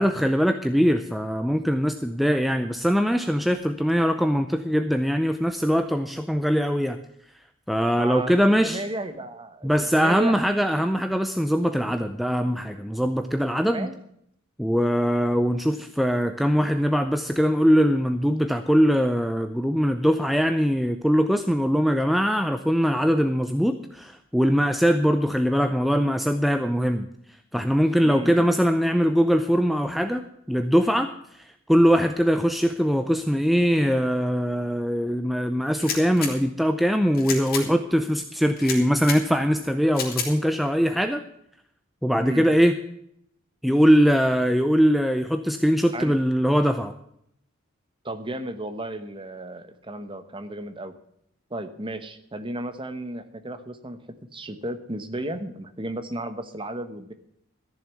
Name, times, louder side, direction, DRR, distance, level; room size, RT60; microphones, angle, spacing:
voice 1, 0.0-7.0 7.7-8.8 9.6-13.9 14.6-27.1 27.5-41.2 42.0-42.8 43.6-46.9, equal, ahead, 7 dB, 0.5 m, -22 dB
voice 2, 8.0-10.3 13.7-13.9 28.0-28.5 42.2-42.4 45.9-46.1 48.0-51.0 51.5-54.0 54.3-57.1, right 1 dB, 25° right, 10 dB, 1.1 m, -34 dB
sound 1, 35.7-36.3 37.1-37.6 38.6-39.2 39.9-40.3, left 6 dB, 45° left, 3.3 m, -30 dB
14.0 x 7.0 x 8.3 m, 0.72 s
head